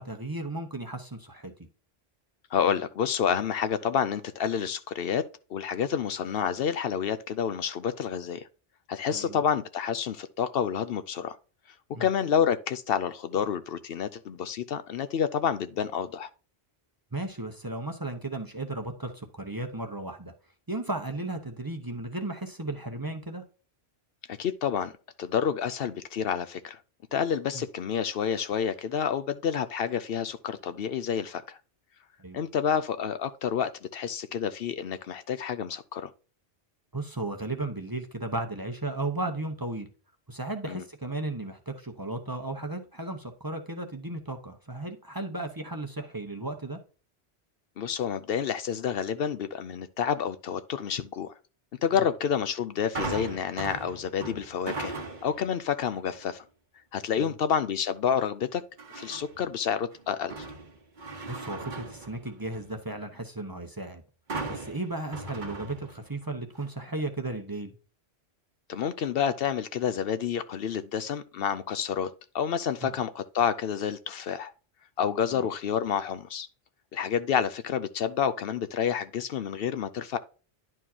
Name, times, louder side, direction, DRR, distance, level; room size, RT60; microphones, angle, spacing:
voice 1, 0.0-1.5 9.1-9.4 11.9-12.1 17.1-20.3 20.7-23.4 27.5-27.6 32.2-32.4 36.9-39.9 40.3-46.8 57.2-57.3 61.3-64.0 64.5-67.7 72.8-72.9 75.3-75.5, right 2 dB, 20° right, 0.9 m, -35 dB
voice 2, 2.5-5.2 5.5-8.4 8.9-11.4 12.0-16.3 24.3-24.9 25.2-26.8 27.1-31.6 32.3-36.1 40.7-40.8 47.8-51.3 51.8-54.9 55.2-56.4 56.9-58.6 58.9-60.3 68.7-72.1 72.3-74.5 75.0-76.5 76.9-80.2, left 8 dB, 65° left, 0.8 m, -29 dB
sound 1, 52.9-55.5 55.9-56.3 58.8-59.5 59.9-62.8 64.3-66.2 66.6-66.7, right 3 dB, 50° right, 1.2 m, -38 dB
11.0 x 4.6 x 2.8 m
omnidirectional pair, 1.1 m